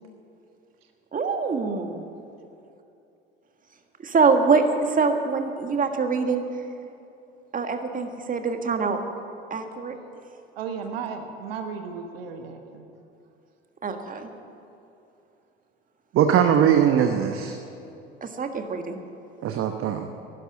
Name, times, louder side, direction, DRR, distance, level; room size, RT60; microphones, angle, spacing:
voice 1, 1.1-2.0 4.0-6.4 7.5-9.0 9.5-9.9 13.8-14.3 18.2-19.0, right 4 dB, 30° right, 5 dB, 1.6 m, -24 dB
voice 2, 10.6-12.9, right 6 dB, 80° right, 5 dB, 1.3 m, -34 dB
voice 3, 16.1-17.5 19.4-20.1, right 9 dB, 45° right, 6 dB, 1.0 m, -20 dB
11.5 x 11.5 x 9.8 m, 2.7 s
hypercardioid pair, 70°, 29 cm